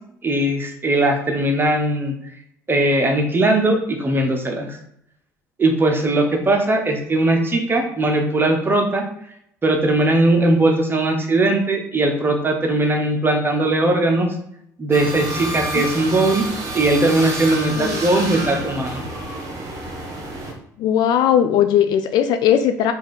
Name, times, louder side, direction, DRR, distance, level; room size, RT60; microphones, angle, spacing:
voice 1, 0.2-2.1 2.7-4.8 5.6-9.0 9.6-14.3 14.8-16.4 16.7-19.0, right 2 dB, 25° right, 3 dB, 1.0 m, -19 dB
sound 1, 14.9-20.5, right 2 dB, 40° right, 1.3 m, -29 dB
voice 2, 20.8-22.9, left 9 dB, 50° left, 8 dB, 0.4 m, -18 dB
4.9 x 2.6 x 3.9 m, 0.74 s
figure-of-eight pair, 55°, 9 cm